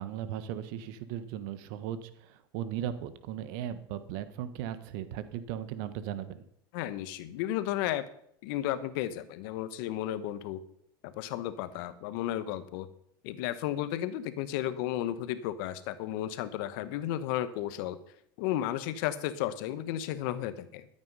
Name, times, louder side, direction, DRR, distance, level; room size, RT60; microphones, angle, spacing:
voice 1, 0.0-6.4, right 10 dB, 65° right, 12 dB, 1.4 m, -37 dB
voice 2, 6.7-8.1 8.4-10.6 11.0-12.9 13.2-18.0 18.4-20.9, left 12 dB, 65° left, 13 dB, 1.2 m, -33 dB
13.5 x 8.8 x 5.6 m, 0.71 s
hypercardioid pair, 95°, 12 cm